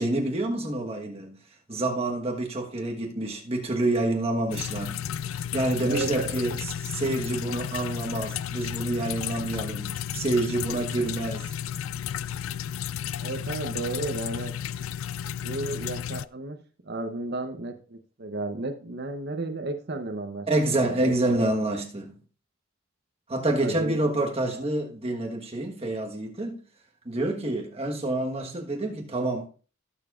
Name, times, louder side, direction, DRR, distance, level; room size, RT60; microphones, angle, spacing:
voice 1, 0.0-1.4 1.7-5.0 5.3-6.6 6.8-11.5 20.5-22.1 23.3-26.6 27.0-29.5, right 2 dB, 30° right, 1.3 m, -28 dB
sound 1, 4.5-16.2, left 9 dB, 80° left, 0.3 m, -33 dB
voice 2, 5.8-6.3 13.2-14.5 15.4-16.6 16.8-20.5 20.8-21.1 23.5-24.0 24.6-24.7, right 2 dB, 55° right, 0.8 m, -33 dB
17.0 x 7.0 x 2.5 m
head